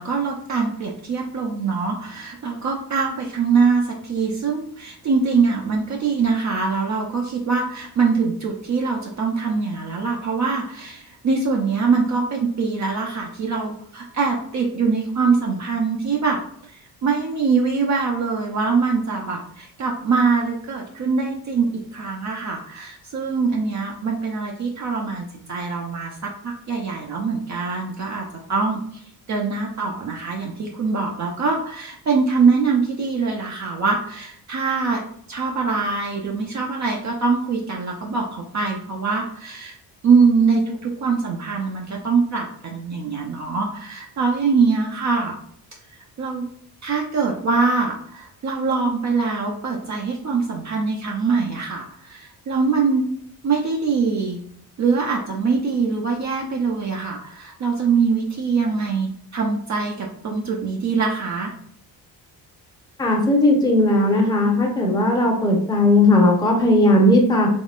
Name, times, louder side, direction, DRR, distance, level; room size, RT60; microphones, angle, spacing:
voice 1, 0.0-29.0 29.3-35.0 35.3-39.8 40.0-45.4 46.2-46.4 46.8-53.1 53.4-54.4 54.8-61.5, right 4 dB, 45° right, 0 dB, 0.6 m, -23 dB
voice 2, 63.0-67.5, left 1 dB, 10° left, 0 dB, 0.7 m, -17 dB
3.6 x 3.0 x 2.4 m, 0.65 s
cardioid pair, 110°, 40 cm